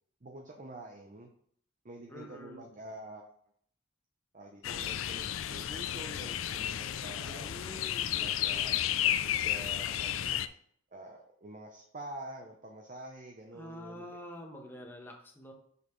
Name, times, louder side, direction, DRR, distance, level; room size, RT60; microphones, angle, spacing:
voice 1, 0.2-1.3 1.8-3.2 4.3-7.5 8.2-8.8 9.0-10.4 10.9-14.1, right 2 dB, 40° right, 1 dB, 0.7 m, -47 dB
voice 2, 2.1-2.7 7.2-8.8 13.5-15.5, equal, 10° left, 0 dB, 1.1 m, -47 dB
sound 1, 4.6-10.5, left 11 dB, 80° left, 0.4 m, -32 dB
6.3 x 5.5 x 3.1 m, 0.62 s
head